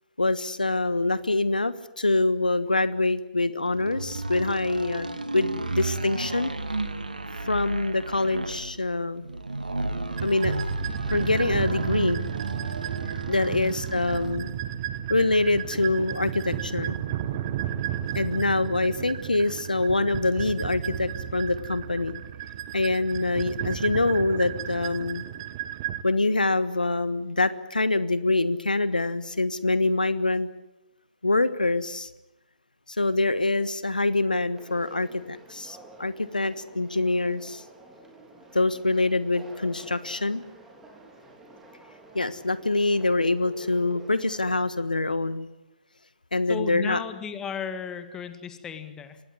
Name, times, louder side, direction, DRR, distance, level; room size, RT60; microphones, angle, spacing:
voice 1, 0.2-5.1 5.3-6.5 7.3-9.2 10.2-10.7 11.1-12.3 13.3-14.5 15.1-17.0 18.1-22.1 22.7-25.3 26.0-30.5 31.2-32.1 32.9-37.6 38.5-40.4 42.1-45.5 46.3-47.0, left 2 dB, 75° left, 15 dB, 1.4 m, -25 dB
sound 1, 3.7-14.5, right 2 dB, 75° right, 2.5 m, -33 dB
sound 2, 10.2-26.0, right 10 dB, 30° right, 1.3 m, -33 dB
Conversation, 34.6-44.6, right 2 dB, 5° right, 3.9 m, -50 dB
voice 2, 46.5-49.2, left 7 dB, 10° left, 10 dB, 1.9 m, -35 dB
24.5 x 19.5 x 9.6 m, 0.92 s
figure-of-eight pair, 130°, 5 cm